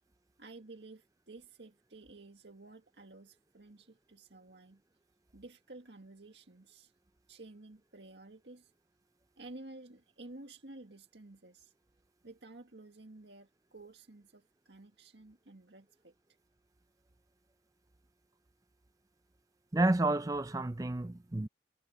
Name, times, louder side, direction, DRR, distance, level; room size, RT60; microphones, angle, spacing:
voice 1, 0.4-4.8 5.3-6.9 7.3-8.7 9.4-11.7 12.2-16.1, right 2 dB, 75° right, 1.9 m, -52 dB
voice 2, 19.7-21.5, right 2 dB, 20° right, 0.5 m, -30 dB
head